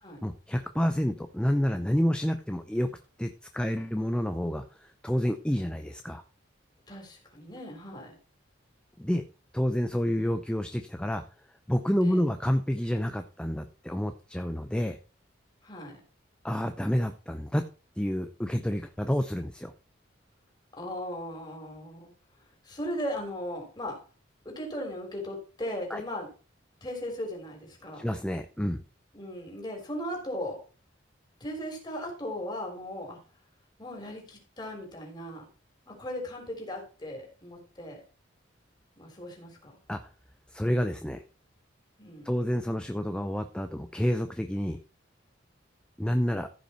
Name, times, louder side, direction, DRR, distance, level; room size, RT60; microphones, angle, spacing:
voice 1, 0.2-2.9 3.2-6.2 9.0-9.2 9.5-11.2 11.7-15.0 16.4-17.7 18.0-19.7 25.9-26.0 27.9-28.8 39.9-40.1 40.5-41.2 42.2-44.8 46.0-46.5, equal, 5° left, 7 dB, 0.6 m, -29 dB
voice 2, 6.9-8.1 12.0-12.3 15.6-16.0 20.8-22.1 22.7-24.0 24.5-26.3 26.8-28.0 29.1-30.6 31.4-33.2 33.8-35.4 35.9-38.0 39.0-39.7 42.0-42.3, equal, 20° left, 1 dB, 3.6 m, -37 dB
14.5 x 5.6 x 4.4 m, 0.35 s
head